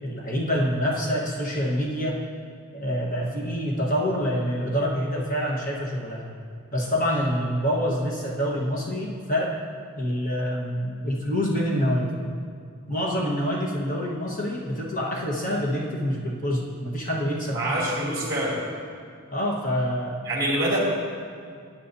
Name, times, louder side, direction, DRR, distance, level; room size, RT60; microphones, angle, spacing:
voice 1, 0.0-2.2 2.7-6.3 6.7-9.5 10.0-12.2 12.9-17.6 18.0-18.1 19.3-20.2, equal, 40° left, -3 dB, 1.3 m, -26 dB
voice 2, 17.5-18.6 20.2-20.8, right 1 dB, 20° right, -6 dB, 2.7 m, -25 dB
18.5 x 9.4 x 2.7 m, 2.2 s
head